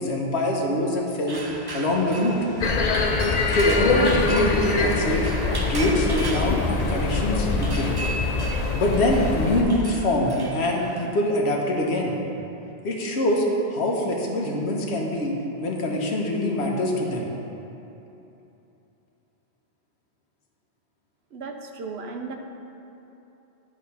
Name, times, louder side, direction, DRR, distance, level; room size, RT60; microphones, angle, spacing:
voice 1, 0.0-1.4 1.7-2.4 3.5-5.3 5.7-7.9 8.7-12.2 12.8-13.4 13.7-17.3, left 1 dB, 85° left, 0 dB, 1.3 m, -24 dB
sound 1, 1.3-11.1, right 2 dB, 25° right, 0.6 m, -36 dB
sound 2, 2.6-9.6, left 3 dB, 50° left, 0.5 m, -24 dB
voice 2, 21.3-22.3, right 4 dB, 75° right, 3 dB, 1.0 m, -35 dB
10.5 x 3.7 x 5.6 m, 2.9 s
omnidirectional pair, 1.1 m